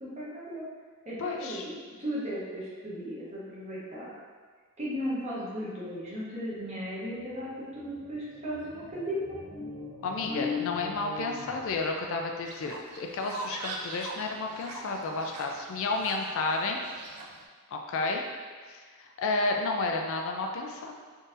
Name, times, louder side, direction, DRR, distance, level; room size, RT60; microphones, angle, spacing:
voice 1, 0.0-0.6 1.0-4.2 4.8-9.2 10.2-10.5, equal, 30° right, -7 dB, 0.8 m, -36 dB
voice 2, 1.2-1.6 10.0-16.8 17.7-18.2 18.7-20.9, left 3 dB, 60° left, 2 dB, 0.3 m, -31 dB
sound 1, 7.1-12.2, left 6 dB, 10° left, 0.8 m, -40 dB
Fowl, 12.4-17.4, right 2 dB, 85° right, 0.4 m, -42 dB
3.8 x 2.6 x 2.5 m, 1.5 s
head